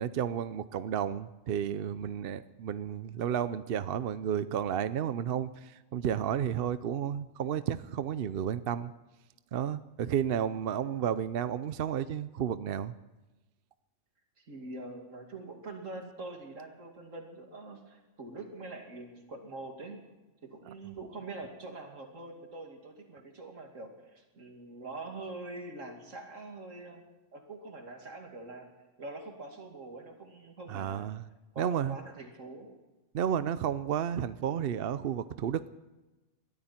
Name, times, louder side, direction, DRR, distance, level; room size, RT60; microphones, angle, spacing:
voice 1, 0.0-8.9 9.5-12.9 30.7-31.2 31.6-32.0 33.1-35.7, right 9 dB, 60° right, 14 dB, 0.7 m, -32 dB
voice 2, 14.5-20.0 20.4-27.0 27.3-28.7 29.0-31.1 31.5-32.7, right 2 dB, 75° right, 2 dB, 2.9 m, -44 dB
21.0 x 13.5 x 4.4 m, 1.1 s
omnidirectional pair, 1.3 m